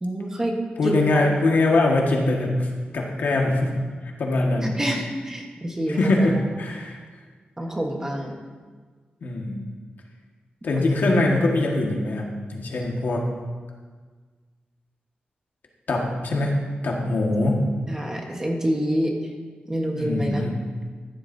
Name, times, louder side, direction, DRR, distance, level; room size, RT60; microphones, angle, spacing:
voice 1, 0.0-0.6 0.8-1.0 4.6-6.1 7.6-8.4 17.9-19.2 19.7-20.4, equal, 15° right, 0 dB, 1.3 m, -27 dB
voice 2, 0.8-3.7 4.0-4.7 5.9-7.0 9.2-9.6 10.6-13.3 15.9-16.5 16.8-17.6 19.9-20.5, left 2 dB, 65° left, -1 dB, 1.7 m, -22 dB
14.5 x 11.0 x 2.7 m, 1.5 s
wide cardioid pair, 170°, 3 cm